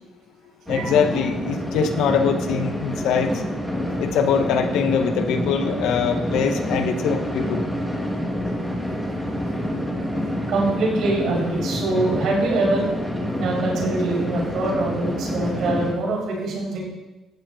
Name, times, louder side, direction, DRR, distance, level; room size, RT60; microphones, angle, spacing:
voice 1, 0.7-3.4 4.0-7.7, left 6 dB, 75° left, 6 dB, 2.0 m, -23 dB
sound 1, 0.7-15.9, equal, ahead, 2.5 m, -27 dB
voice 2, 10.5-12.9 13.4-16.8, right 2 dB, 55° right, -2 dB, 7.4 m, -24 dB
19.0 x 14.5 x 4.4 m, 1.1 s
cardioid pair, 170°, 0 cm